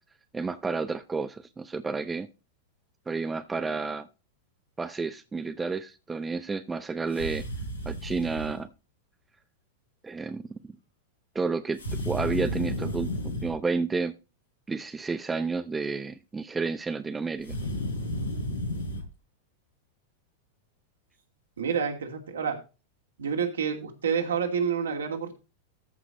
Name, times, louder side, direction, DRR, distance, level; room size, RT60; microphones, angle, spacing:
voice 1, 0.3-2.3 3.1-4.1 4.8-7.4 7.9-8.7 10.0-10.5 11.3-11.8 12.0-13.1 13.4-14.1 14.7-17.6, right 4 dB, 15° right, 0.6 m, -31 dB
sound 1, 7.1-8.6 11.8-13.6 17.4-19.0, equal, 80° left, 4.2 m, -32 dB
voice 2, 21.6-22.6 23.2-25.4, right 7 dB, 70° right, 2.6 m, -28 dB
14.0 x 6.0 x 3.9 m
figure-of-eight pair, 90°, 0 cm